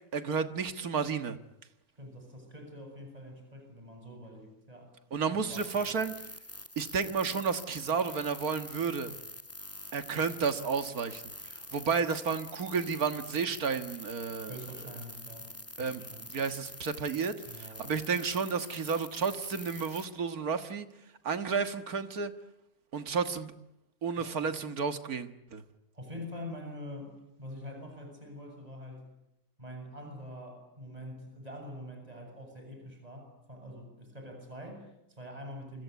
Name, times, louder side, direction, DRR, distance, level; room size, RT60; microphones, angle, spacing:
voice 1, 0.1-1.4 5.1-6.1 6.8-9.1 9.9-14.5 15.8-16.0 16.3-20.9 21.2-22.3 22.9-23.5 24.0-25.6, right 5 dB, 90° right, 9 dB, 2.1 m, -32 dB
voice 2, 2.0-4.9 5.3-5.9 14.5-16.3 17.5-18.0 24.2-24.4 25.9-29.1 29.6-35.8, equal, 25° right, 3 dB, 7.7 m, -45 dB
sound 1, 5.5-20.1, left 1 dB, 10° left, 1.3 m, -46 dB
28.5 x 25.5 x 8.2 m, 0.85 s
omnidirectional pair, 1.5 m